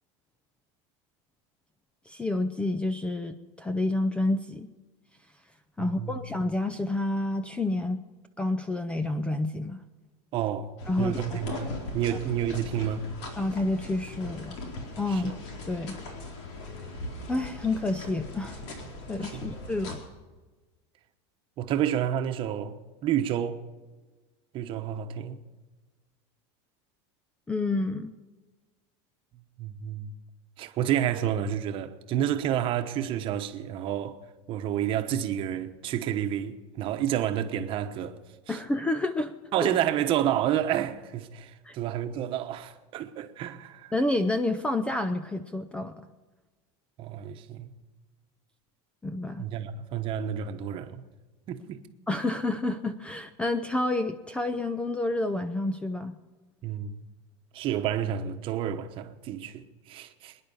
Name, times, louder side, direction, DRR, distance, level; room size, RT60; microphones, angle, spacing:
voice 1, 2.1-4.7 5.8-8.0 8.4-9.8 10.9-11.4 12.1-12.2 13.4-14.6 15.0-15.4 15.7-16.0 17.3-18.6 19.1-20.0 27.5-28.1 38.5-39.3 39.6-39.7 41.6-41.7 43.9-46.1 49.0-49.5 52.1-56.2, left 2 dB, 5° left, 0.5 m, -29 dB
voice 2, 5.8-6.2 10.3-13.0 15.1-15.3 19.2-19.5 21.6-23.6 24.5-25.4 29.6-30.1 30.6-34.2 34.5-38.2 38.5-38.6 39.5-43.9 47.0-47.7 49.4-51.0 51.5-51.8 56.6-57.0 57.5-60.4, right 10 dB, 35° right, 1.1 m, -30 dB
sound 1, 10.8-20.0, left 2 dB, 80° left, 4.1 m, -40 dB
25.5 x 10.0 x 5.5 m
supercardioid pair, 160°, 15 cm